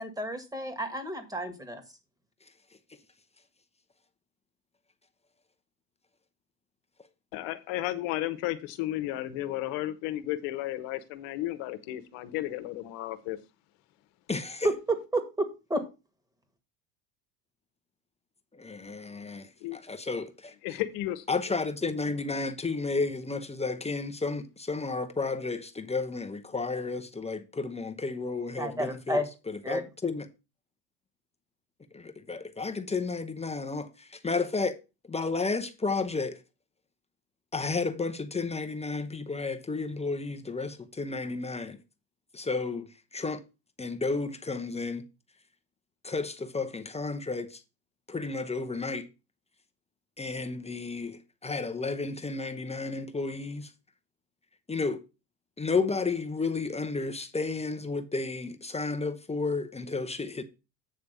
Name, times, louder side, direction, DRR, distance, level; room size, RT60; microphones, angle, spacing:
voice 1, 0.0-1.8 14.6-15.8 28.6-29.3 29.6-29.8, right 1 dB, 5° right, 1.7 m, -31 dB
voice 2, 7.3-13.4 19.6-19.8 20.6-21.2, left 15 dB, 65° left, 1.2 m, -33 dB
voice 3, 14.3-14.7 18.6-19.5 19.7-20.5 21.3-29.2 29.7-30.3 31.9-33.9 34.2-34.7 35.1-36.4 37.5-41.8 42.3-42.8 43.1-43.4 43.8-45.0 46.0-47.5 48.1-49.1 50.2-53.7 54.7-55.0 55.6-60.4, left 4 dB, 15° left, 0.8 m, -32 dB
8.6 x 3.4 x 6.6 m
hypercardioid pair, 90°, 50 cm